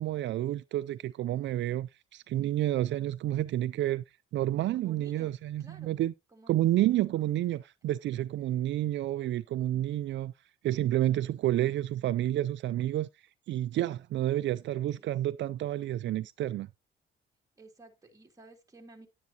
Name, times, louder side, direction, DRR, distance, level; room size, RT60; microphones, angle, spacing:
voice 1, 0.0-4.0 4.3-6.1 6.5-10.3 10.6-13.1 13.5-16.7, right 13 dB, 65° right, 0.4 m, -30 dB
voice 2, 2.3-2.6 4.7-6.0 6.3-7.2 15.0-15.1 17.6-19.1, right 2 dB, 15° right, 2.7 m, -55 dB
10.5 x 9.4 x 2.9 m
cardioid pair, 90°, 20 cm